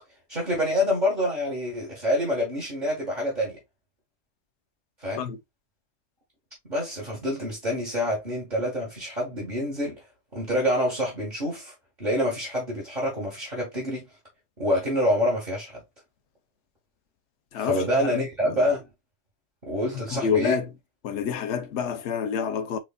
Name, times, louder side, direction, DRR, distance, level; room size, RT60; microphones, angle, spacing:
voice 1, 0.3-3.6 5.0-5.3 6.7-10.0 10.3-14.1 14.6-15.8 17.6-18.9 19.7-20.6, equal, 40° right, 1.6 m, -27 dB
voice 2, 17.5-17.8 18.1-18.6 20.1-20.7 21.0-22.8, left 7 dB, 80° left, 0.9 m, -27 dB
4.9 x 3.1 x 2.2 m
omnidirectional pair, 1.2 m